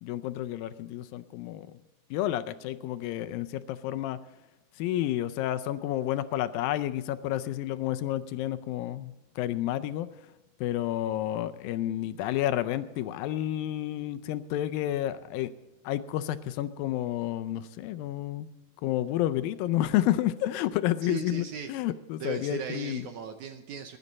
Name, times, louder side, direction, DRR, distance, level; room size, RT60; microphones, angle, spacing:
voice 1, 0.0-1.8 2.1-4.2 4.8-10.1 10.6-15.5 15.8-18.5 18.8-23.0, left 13 dB, 80° left, 11 dB, 2.3 m, -30 dB
voice 2, 21.0-21.7 22.2-24.0, right 7 dB, 70° right, 7 dB, 2.0 m, -37 dB
21.0 x 11.0 x 4.1 m, 1.0 s
omnidirectional pair, 4.3 m